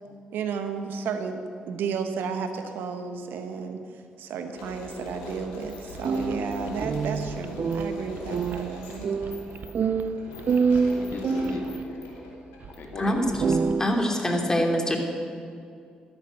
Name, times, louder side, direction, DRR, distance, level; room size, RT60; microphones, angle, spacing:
voice 1, 0.3-1.4 1.7-9.1, right 6 dB, 65° right, 7 dB, 1.2 m, -33 dB
sound 1, 4.5-13.1, left 2 dB, 80° left, 2.8 m, -41 dB
sound 2, 5.9-11.8 12.6-12.7 13.1-13.8, right 5 dB, 50° right, 0.7 m, -27 dB
voice 2, 10.9-12.0 12.8-13.4, left 2 dB, 60° left, 2 dB, 2.2 m, -38 dB
voice 3, 13.8-15.0, equal, 15° left, 2 dB, 3.1 m, -24 dB
13.0 x 11.0 x 8.2 m, 2.3 s
hypercardioid pair, 45°, 4 cm